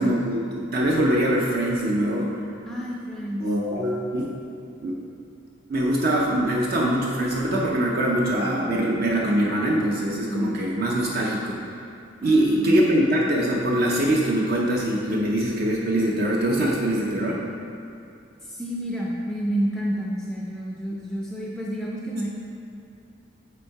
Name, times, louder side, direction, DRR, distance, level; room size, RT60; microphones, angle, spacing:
voice 1, 0.0-2.3 3.4-4.3 4.8-5.0 5.7-11.8 12.2-17.4, right 1 dB, 45° right, -2 dB, 0.6 m, -23 dB
voice 2, 2.7-3.8 10.3-10.6 12.2-13.2 18.4-22.3, equal, 5° left, -4 dB, 0.4 m, -30 dB
8.1 x 3.5 x 4.6 m, 2.7 s
head